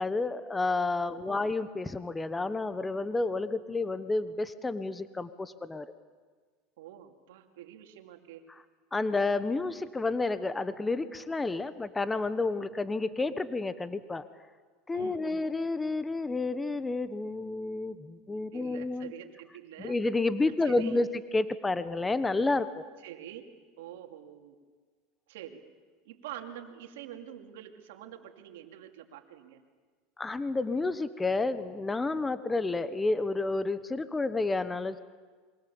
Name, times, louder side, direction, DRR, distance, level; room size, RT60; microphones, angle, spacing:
voice 1, 0.0-5.9 8.9-14.2 14.9-19.1 19.8-21.1 21.3-22.9 30.2-35.0, left 3 dB, 15° left, 13 dB, 1.1 m, -30 dB
voice 2, 1.0-1.5 6.8-8.4 14.9-15.5 18.5-19.9 20.6-21.0 23.0-23.5 23.8-24.6 25.3-25.6 26.0-29.6, right 11 dB, 80° right, 4 dB, 2.7 m, -46 dB
26.5 x 23.5 x 7.2 m, 1.5 s
hypercardioid pair, 95°, 0 cm